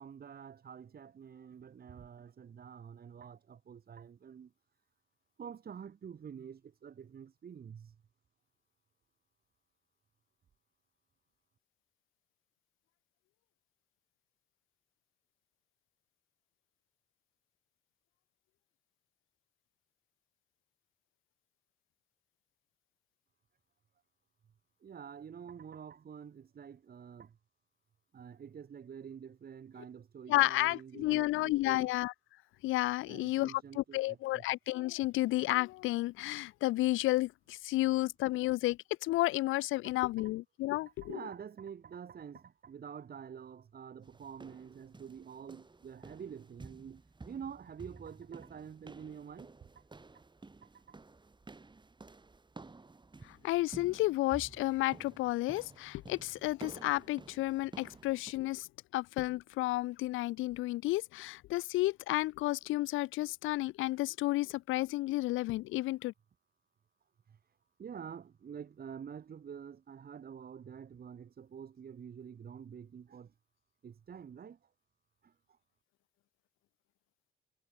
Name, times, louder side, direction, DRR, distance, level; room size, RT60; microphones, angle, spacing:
voice 1, 0.0-4.5 5.4-8.0 24.8-27.3 28.1-31.9 33.1-34.4 39.8-40.0 40.7-49.5 50.6-51.0 67.3-67.4 67.8-73.3 73.8-74.6 75.2-75.3, right 7 dB, 50° right, 3.8 m, -48 dB
voice 2, 30.3-32.1 32.6-41.2 53.2-58.7 58.9-66.1, left 18 dB, 85° left, 0.5 m, -32 dB
sound 1, 44.0-58.3, right 3 dB, 25° right, 6.3 m, -53 dB
cardioid pair, 90°, 20 cm